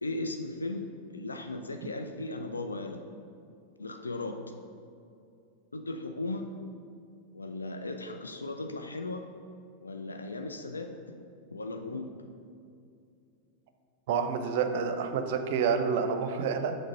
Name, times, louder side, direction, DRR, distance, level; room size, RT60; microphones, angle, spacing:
voice 1, 0.0-3.0 3.8-4.4 5.7-6.5 7.3-9.3 9.8-11.2 11.5-12.1, left 2 dB, 80° left, 5 dB, 0.3 m, -37 dB
voice 2, 14.1-16.8, right 6 dB, 55° right, 7 dB, 0.5 m, -28 dB
6.4 x 3.3 x 5.2 m, 2.5 s
figure-of-eight pair, 90°, 0 cm